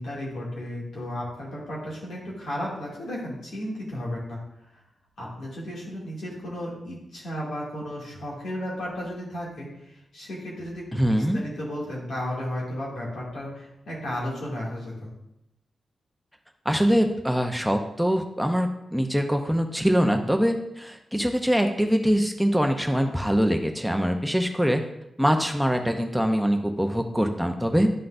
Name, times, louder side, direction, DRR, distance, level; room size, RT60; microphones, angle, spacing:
voice 1, 0.0-4.4 4.7-4.8 5.2-15.1, equal, 75° left, -5 dB, 2.4 m, -34 dB
voice 2, 10.9-11.4 16.6-24.8 25.2-27.9, equal, ahead, 4 dB, 0.7 m, -23 dB
11.0 x 3.8 x 2.6 m, 0.84 s
cardioid pair, 50°, 0 cm